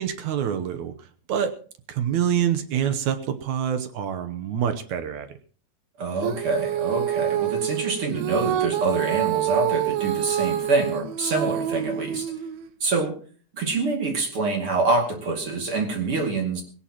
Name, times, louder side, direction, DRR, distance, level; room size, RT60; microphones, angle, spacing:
voice 1, 0.0-1.6 1.9-5.4, right 9 dB, 70° right, 10 dB, 2.2 m, -26 dB
voice 2, 6.0-12.3 12.8-13.2 13.5-16.6, right 3 dB, 45° right, 2 dB, 3.1 m, -26 dB
Female singing, 6.2-12.7, right 12 dB, 90° right, 2.6 m, -27 dB
19.0 x 17.5 x 3.0 m, 0.41 s
omnidirectional pair, 3.8 m